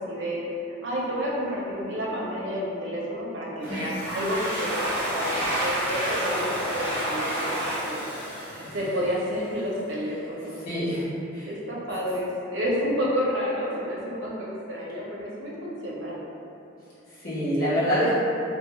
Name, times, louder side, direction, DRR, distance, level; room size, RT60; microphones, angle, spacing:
voice 1, 0.1-0.4 0.8-7.5 7.8-8.0 8.7-10.6 11.5-16.2, equal, 70° right, -5 dB, 0.6 m, -30 dB
Domestic sounds home sounds, 3.6-9.2, equal, 10° left, 1.1 m, -30 dB
voice 2, 10.6-11.5 17.1-18.1, equal, 50° left, -12 dB, 1.1 m, -27 dB
3.0 x 2.6 x 2.3 m, 2.8 s
head